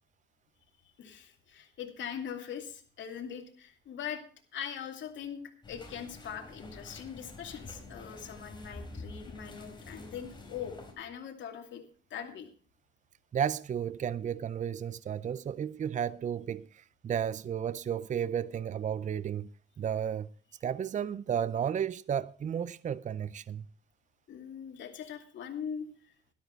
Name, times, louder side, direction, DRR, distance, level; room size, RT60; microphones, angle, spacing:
voice 1, 1.0-4.2 4.5-5.4 5.7-11.8 12.1-12.5 24.3-25.9, left 8 dB, 70° left, 2.5 m, -41 dB
sound 1, 5.6-10.9, left 2 dB, 25° left, 4.0 m, -48 dB
voice 2, 13.3-19.5 19.8-20.3 20.6-23.6, right 8 dB, 40° right, 0.5 m, -33 dB
12.5 x 12.0 x 4.5 m
cardioid pair, 90°, 20 cm